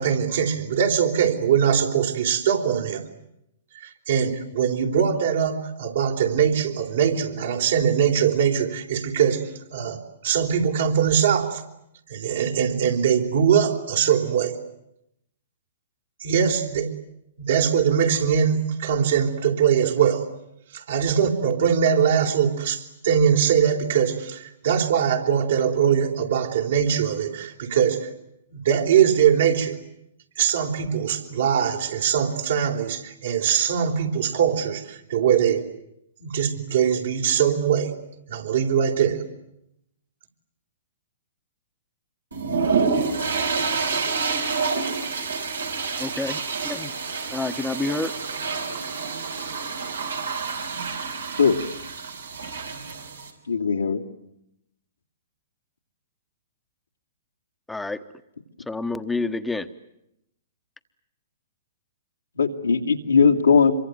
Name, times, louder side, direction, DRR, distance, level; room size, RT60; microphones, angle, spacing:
voice 1, 0.0-3.1 3.8-11.6 12.1-14.6 16.2-16.9 17.4-20.3 20.7-28.1 28.5-29.8 30.4-35.6 36.2-38.0 38.3-39.2, right 8 dB, 65° right, 3 dB, 4.0 m, -22 dB
sound 1, 42.3-53.3, right 5 dB, 85° right, 5.0 m, -28 dB
voice 2, 46.0-46.9 47.3-48.1 57.7-58.0 58.7-59.7, left 3 dB, 5° left, 10 dB, 1.3 m, -28 dB
voice 3, 53.5-54.0 62.4-63.7, left 5 dB, 85° left, 0 dB, 2.6 m, -19 dB
26.5 x 23.5 x 9.5 m, 0.82 s
hypercardioid pair, 120°, 0 cm